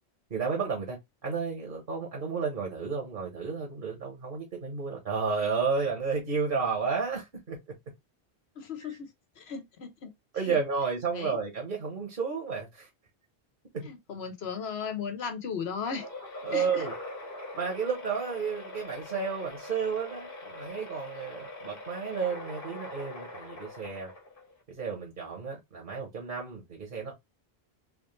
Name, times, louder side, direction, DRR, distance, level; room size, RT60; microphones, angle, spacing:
voice 1, 0.3-7.6 8.8-9.0 10.3-12.9 13.7-13.9 16.4-16.9 17.5-24.1 24.7-27.2, right 5 dB, 55° right, 1.3 m, -32 dB
voice 2, 8.6-9.1 9.4-10.1 10.4-10.6 11.1-11.4 13.9-16.1 16.5-16.8, left 6 dB, 75° left, 1.2 m, -36 dB
sound 1, 15.8-24.6, left 2 dB, 60° left, 1.4 m, -42 dB
3.7 x 3.1 x 3.2 m
omnidirectional pair, 1.1 m